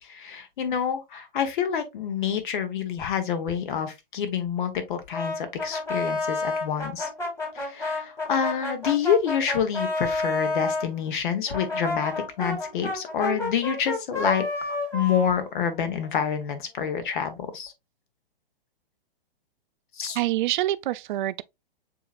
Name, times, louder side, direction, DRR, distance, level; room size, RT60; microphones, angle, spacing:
voice 1, 0.0-7.1 7.5-17.7 20.0-20.2, left 8 dB, 55° left, 1.3 m, -27 dB
Brass instrument, 5.1-10.9 11.5-16.2, left 2 dB, 10° left, 2.1 m, -30 dB
voice 2, 20.1-21.4, right 15 dB, 55° right, 0.4 m, -26 dB
6.9 x 2.9 x 2.5 m
hypercardioid pair, 130°, 30 cm